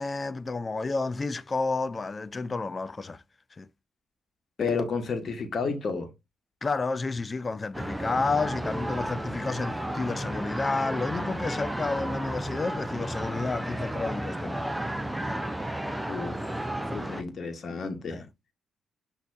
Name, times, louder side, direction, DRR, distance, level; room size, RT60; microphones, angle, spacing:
voice 1, 0.0-3.2 3.6-3.7 6.6-14.6 15.2-15.4 18.1-18.3, left 3 dB, 35° left, 0.5 m, -31 dB
voice 2, 4.6-6.1 16.1-16.6 16.9-18.2, left 4 dB, 55° left, 1.1 m, -31 dB
sound 1, 7.7-17.2, right 1 dB, 10° right, 0.7 m, -33 dB
6.1 x 2.9 x 2.5 m
hypercardioid pair, 45°, 0 cm